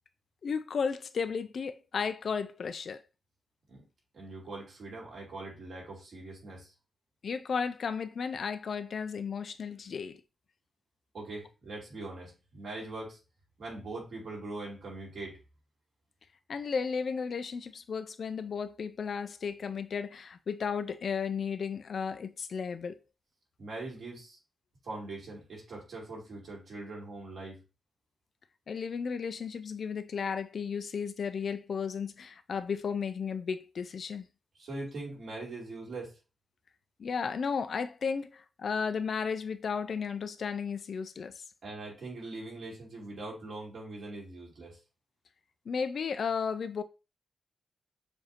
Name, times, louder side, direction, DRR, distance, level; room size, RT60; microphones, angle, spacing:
voice 1, 0.4-3.0 7.2-10.2 16.5-23.0 28.7-34.3 37.0-41.4 45.7-46.8, left 6 dB, 60° left, 0.3 m, -34 dB
voice 2, 4.1-6.7 11.1-13.2 13.6-15.4 23.6-24.4 24.8-27.6 34.6-36.1 41.6-44.8, right 2 dB, 65° right, 2.6 m, -42 dB
6.8 x 2.6 x 2.8 m
wide cardioid pair, 150°, 0 cm